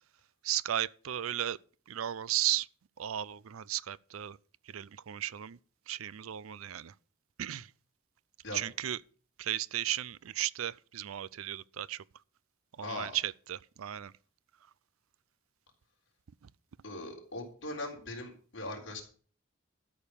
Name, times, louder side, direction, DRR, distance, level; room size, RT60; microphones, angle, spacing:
voice 1, 0.4-1.6 1.9-2.7 3.0-4.4 4.7-5.6 5.9-6.9 7.4-7.7 8.5-9.0 9.4-12.0 12.8-14.1, right 12 dB, 90° right, 0.5 m, -35 dB
voice 2, 12.8-13.1 16.8-19.0, left 2 dB, 60° left, 3.7 m, -40 dB
12.5 x 5.4 x 8.5 m
head